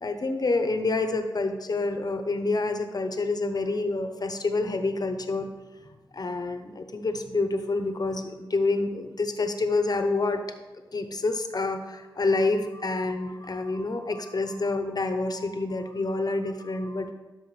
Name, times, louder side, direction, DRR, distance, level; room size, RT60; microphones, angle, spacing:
voice 1, 0.0-5.5 5.8-5.9 6.1-10.4 10.9-17.1, left 3 dB, 50° left, 7 dB, 0.8 m, -28 dB
11.5 x 4.9 x 3.3 m, 1.2 s
cardioid pair, 50°, 9 cm